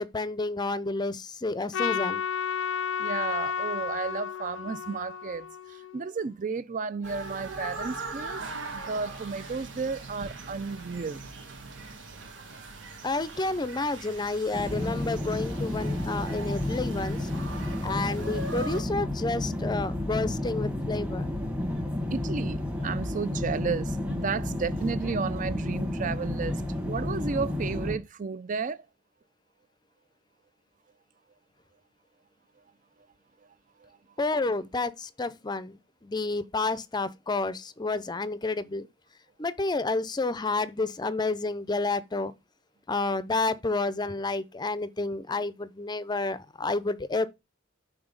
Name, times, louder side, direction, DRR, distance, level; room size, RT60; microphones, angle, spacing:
voice 1, 0.0-2.2 13.0-17.3 17.8-21.3 34.2-38.9 39.4-42.3 42.9-47.3, left 3 dB, 20° left, 0.5 m, -30 dB
Trumpet, 1.7-6.1, left 7 dB, 80° left, 0.5 m, -32 dB
voice 2, 3.0-8.4 8.7-11.3 17.9-18.0 22.1-28.8 33.8-33.9, right 5 dB, 45° right, 0.5 m, -33 dB
sound 1, 7.0-18.8, right 3 dB, 75° right, 1.5 m, -41 dB
sound 2, 14.5-28.0, left 1 dB, 5° right, 1.3 m, -31 dB
5.9 x 3.9 x 5.2 m
head